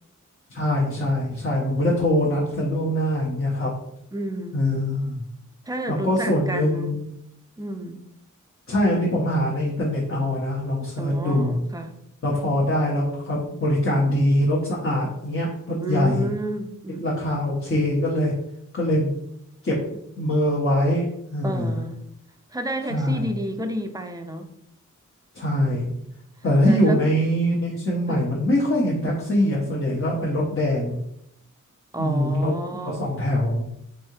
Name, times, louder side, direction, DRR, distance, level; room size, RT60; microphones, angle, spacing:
voice 1, 0.5-3.7 4.5-5.2 6.0-7.1 8.7-11.6 12.2-16.3 17.0-18.3 18.7-19.1 19.6-19.8 20.2-21.1 21.3-21.7 22.9-23.3 25.3-25.9 26.4-31.0 32.0-32.5 33.0-33.7, left 1 dB, 45° left, -5 dB, 0.8 m, -23 dB
voice 2, 4.1-4.6 5.7-7.0 7.6-8.0 11.0-12.0 15.8-17.4 21.4-22.0 22.5-24.5 26.6-27.0 28.1-28.3 31.9-33.2, right 1 dB, 10° right, 6 dB, 0.4 m, -30 dB
3.6 x 3.3 x 2.7 m, 0.77 s
wide cardioid pair, 75°, 31 cm